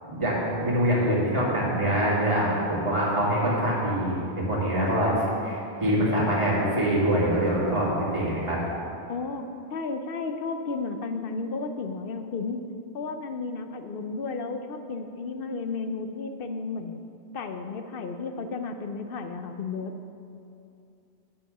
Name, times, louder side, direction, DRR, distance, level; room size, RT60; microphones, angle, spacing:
voice 1, 0.1-8.6, equal, 25° right, -7 dB, 2.4 m, -24 dB
voice 2, 9.1-9.4 9.7-12.6 12.9-17.0 17.3-19.9, left 4 dB, 60° left, 7 dB, 0.8 m, -33 dB
7.7 x 7.6 x 6.6 m, 2.6 s
omnidirectional pair, 1.2 m